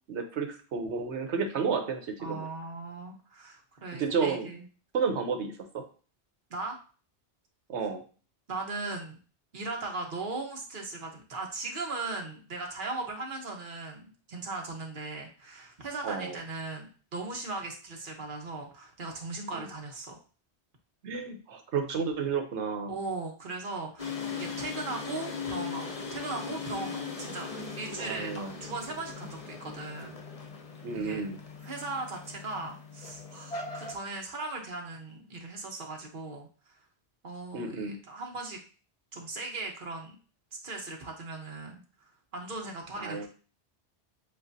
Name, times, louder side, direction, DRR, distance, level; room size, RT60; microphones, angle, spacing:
voice 1, 0.1-2.5 3.9-4.5 4.9-5.9 7.7-8.0 16.0-16.4 19.5-19.7 21.0-23.0 28.0-28.6 30.8-31.4 37.5-38.0 43.0-43.3, right 5 dB, 85° right, 5 dB, 1.1 m, -32 dB
voice 2, 2.2-4.7 6.5-6.8 8.5-9.2 9.5-20.2 22.9-30.2 30.9-31.3 31.6-36.7 37.2-38.6 39.1-40.2 40.6-41.8 42.3-43.3, right 3 dB, 50° right, 1 dB, 1.1 m, -38 dB
sound 1, 24.0-33.9, left 4 dB, 35° left, 0.7 m, -39 dB
7.6 x 2.5 x 2.7 m, 0.38 s
omnidirectional pair, 1.1 m